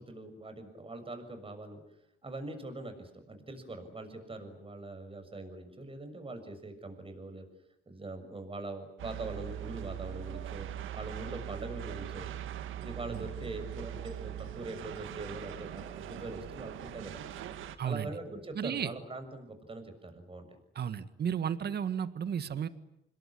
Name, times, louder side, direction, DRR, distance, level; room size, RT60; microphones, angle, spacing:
voice 1, 0.0-1.8 2.2-7.5 7.9-12.3 12.8-17.2 17.8-20.5, right 2 dB, 25° right, 8 dB, 6.6 m, -42 dB
sound 1, 9.0-17.8, right 11 dB, 85° right, 1.8 m, -41 dB
voice 2, 17.8-18.1 18.5-18.9 20.8-22.7, right 8 dB, 55° right, 13 dB, 1.8 m, -33 dB
27.0 x 21.5 x 10.0 m, 0.81 s
cardioid pair, 90°, 20 cm